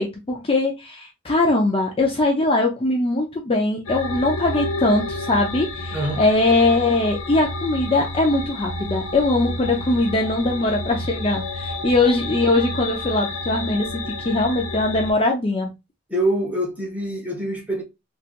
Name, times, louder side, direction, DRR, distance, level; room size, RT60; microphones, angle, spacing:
voice 1, 0.0-15.7, left 2 dB, 25° left, 0.6 m, -21 dB
sound 1, 3.9-15.1, left 2 dB, 80° left, 0.8 m, -30 dB
voice 2, 5.9-6.2 16.1-17.8, right 1 dB, 5° right, 1.1 m, -25 dB
3.3 x 2.9 x 2.4 m
head